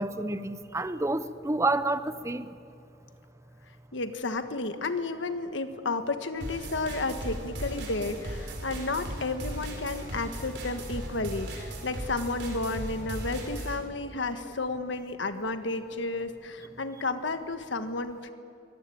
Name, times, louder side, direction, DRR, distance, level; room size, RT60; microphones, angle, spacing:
voice 1, 0.0-2.5, right 2 dB, 15° right, 0.7 m, -29 dB
voice 2, 3.9-18.3, left 3 dB, 90° left, 1.6 m, -32 dB
sound 1, 6.4-13.8, right 1 dB, 70° right, 5.0 m, -37 dB
23.5 x 18.5 x 8.8 m
head